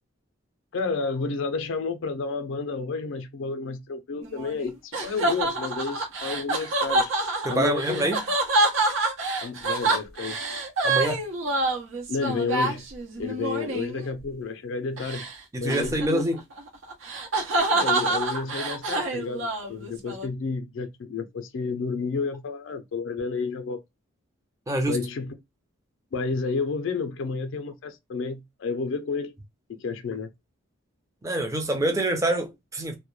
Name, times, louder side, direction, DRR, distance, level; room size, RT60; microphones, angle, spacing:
voice 1, 0.7-7.1 7.5-8.1 9.4-10.4 12.1-12.9 13.2-15.3 15.6-16.2 17.7-23.8 24.9-25.4 26.1-29.3 29.7-30.3, left 4 dB, 65° left, 0.4 m, -31 dB
sound 1, 4.2-14.1 15.0-15.3 15.7-20.3, right 2 dB, 75° right, 0.7 m, -27 dB
voice 2, 7.4-8.2 10.8-11.2 15.5-16.4 24.7-25.0 31.2-32.9, right 1 dB, 15° right, 0.4 m, -26 dB
2.2 x 2.0 x 3.0 m
head